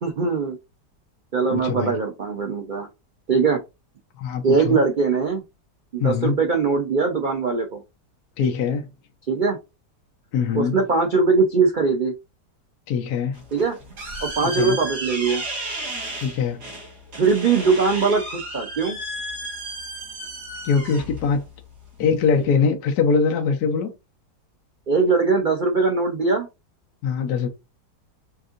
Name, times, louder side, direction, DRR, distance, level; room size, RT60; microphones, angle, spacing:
voice 1, 0.0-0.6 1.3-2.9 3.3-3.6 4.4-5.4 5.9-7.8 9.3-9.6 10.5-12.1 13.5-13.8 14.2-15.4 17.2-19.0 24.9-26.5, right 4 dB, 85° right, 0.4 m, -21 dB
voice 2, 1.5-1.9 4.2-4.8 6.0-6.3 8.4-8.9 10.3-10.8 12.9-13.4 14.4-14.8 16.2-16.6 20.6-21.4 22.0-23.9 27.0-27.5, left 6 dB, 65° left, 1.2 m, -22 dB
sound 1, 13.3-22.4, right 1 dB, 70° right, 2.0 m, -34 dB
5.4 x 2.6 x 2.5 m
omnidirectional pair, 1.8 m